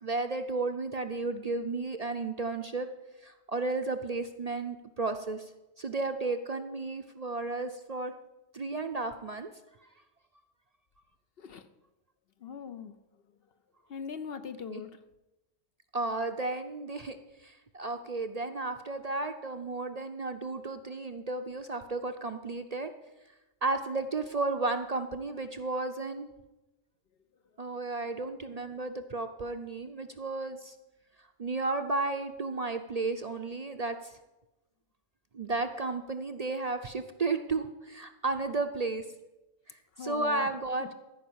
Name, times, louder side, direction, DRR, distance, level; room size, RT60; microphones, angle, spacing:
voice 1, 0.0-2.9 3.2-5.5 5.8-8.1 8.5-9.5 14.7-14.8 15.9-22.9 23.6-26.3 27.6-30.7 31.4-34.1 35.3-39.0 39.7-40.9, right 3 dB, 40° right, 7 dB, 0.6 m, -33 dB
voice 2, 11.4-11.7 12.4-13.0 13.9-15.0 40.0-40.5, left 6 dB, 60° left, 10 dB, 0.8 m, -40 dB
14.5 x 5.4 x 8.6 m, 1.0 s
omnidirectional pair, 1.2 m